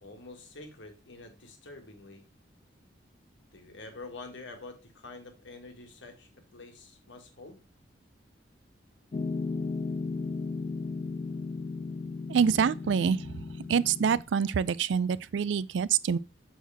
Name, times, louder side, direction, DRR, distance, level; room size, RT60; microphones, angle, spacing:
voice 1, 0.0-2.2 3.5-7.6, left 3 dB, 85° left, 1.8 m, -47 dB
Piano, 9.1-14.2, left 4 dB, 35° left, 0.3 m, -35 dB
voice 2, 12.3-13.3 13.7-16.2, right 7 dB, 80° right, 0.4 m, -26 dB
6.4 x 6.2 x 3.4 m
head